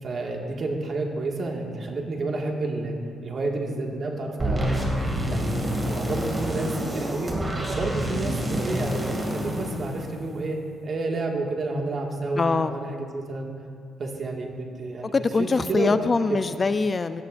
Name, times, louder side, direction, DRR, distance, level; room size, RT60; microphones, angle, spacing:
voice 1, 0.0-3.0 3.2-4.8 5.3-7.3 7.7-13.5 14.0-16.0, right 2 dB, 50° right, 0 dB, 1.9 m, -30 dB
sound 1, 4.4-10.6, equal, 20° right, 2.5 m, -28 dB
voice 2, 12.4-12.8 15.1-17.2, left 4 dB, 35° left, 11 dB, 0.4 m, -23 dB
18.0 x 13.0 x 2.6 m, 2.2 s
cardioid pair, 90°, 0 cm